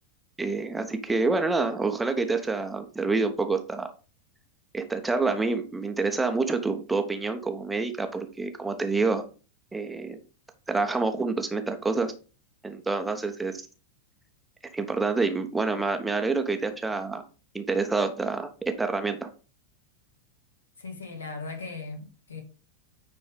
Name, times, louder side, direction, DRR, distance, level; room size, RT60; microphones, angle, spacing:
voice 1, 0.4-3.9 4.7-9.2 9.7-10.2 10.7-12.1 12.6-13.6 14.7-17.2 17.5-19.3, right 3 dB, 10° right, 1.1 m, -27 dB
voice 2, 20.8-22.4, left 3 dB, 70° left, 2.1 m, -38 dB
9.7 x 4.1 x 5.0 m
figure-of-eight pair, 90°, 0 cm